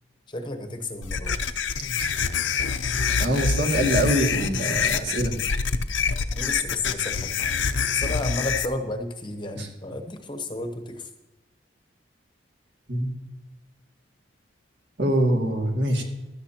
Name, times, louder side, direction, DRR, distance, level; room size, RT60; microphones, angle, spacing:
voice 1, 0.3-1.4 6.3-7.6 7.9-11.1, left 2 dB, 25° left, 5 dB, 0.9 m, -32 dB
sound 1, 1.0-8.7, left 6 dB, 75° left, 0.6 m, -26 dB
voice 2, 3.2-5.4 9.6-9.7 12.9-13.1 15.0-16.0, right 1 dB, 65° right, 1 dB, 2.1 m, -24 dB
16.0 x 12.0 x 2.9 m, 1.0 s
head